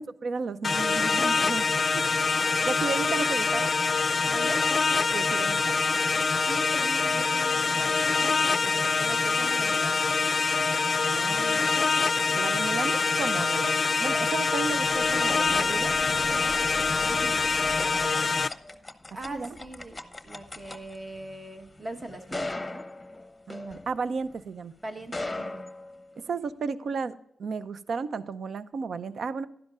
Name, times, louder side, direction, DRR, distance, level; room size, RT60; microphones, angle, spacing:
voice 1, 0.0-1.7 2.4-3.7 5.1-5.8 11.0-11.9 12.3-13.7 14.0-15.9 17.8-18.5 19.2-19.6 23.5-24.7 26.2-27.1 27.4-29.5, right 4 dB, 65° right, 15 dB, 0.5 m, -33 dB
sound 1, 0.6-18.5, left 4 dB, 45° left, 0.4 m, -25 dB
voice 2, 4.3-4.6 6.5-10.0 17.1-17.5 19.1-22.9 24.8-25.7, right 1 dB, 30° right, 5 dB, 1.3 m, -41 dB
sound 2, 14.2-24.4 25.0-26.5, left 2 dB, 20° left, 0.9 m, -40 dB
12.0 x 10.5 x 2.5 m, 0.77 s
cardioid pair, 60°, 0 cm